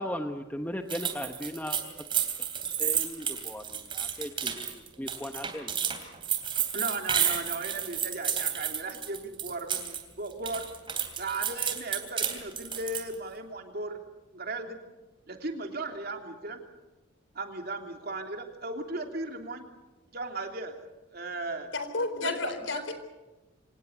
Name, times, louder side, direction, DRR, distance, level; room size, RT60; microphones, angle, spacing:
voice 1, 0.0-1.8 2.8-5.7, left 1 dB, 10° left, 5 dB, 1.0 m, -37 dB
sound 1, 0.9-10.0 10.3-13.1, right 8 dB, 25° right, 3.1 m, -31 dB
voice 2, 6.7-10.6 11.2-14.0 14.3-14.8 15.3-16.6 17.3-19.7 20.1-20.8 21.1-21.7 22.2-22.8, right 2 dB, 50° right, 4 dB, 3.1 m, -36 dB
voice 3, 21.7-22.9, left 3 dB, 75° left, 9 dB, 4.1 m, -31 dB
25.5 x 18.5 x 8.1 m, 1.1 s
head